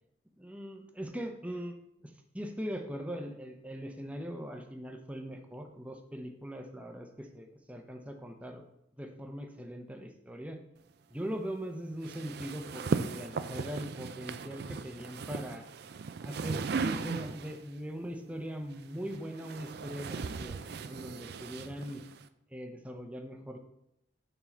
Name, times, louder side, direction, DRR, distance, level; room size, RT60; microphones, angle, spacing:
voice 1, 0.4-1.8 2.0-8.6 9.0-10.6 11.1-15.6 16.2-22.0 22.5-23.6, equal, 5° right, 4 dB, 0.7 m, -41 dB
sound 1, 12.0-17.7 18.7-22.3, right 4 dB, 55° right, 0.4 m, -37 dB
7.1 x 5.5 x 4.4 m, 0.81 s
head